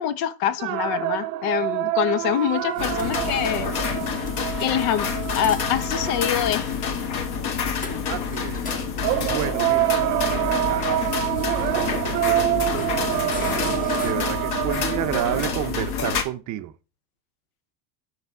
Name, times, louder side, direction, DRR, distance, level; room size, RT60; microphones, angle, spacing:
voice 1, 0.0-3.7 4.6-7.0, left 10 dB, 75° left, 0.9 m, -25 dB
sound 1, 0.6-6.9 9.0-15.7, right 16 dB, 85° right, 0.8 m, -27 dB
sound 2, 2.2-14.1, left 3 dB, 15° left, 0.8 m, -40 dB
sound 3, 2.8-16.2, left 6 dB, 50° left, 1.4 m, -28 dB
voice 2, 8.1-8.9 9.3-11.5 12.0-16.7, right 13 dB, 40° right, 0.5 m, -32 dB
5.8 x 5.7 x 4.7 m
supercardioid pair, 125°, 48 cm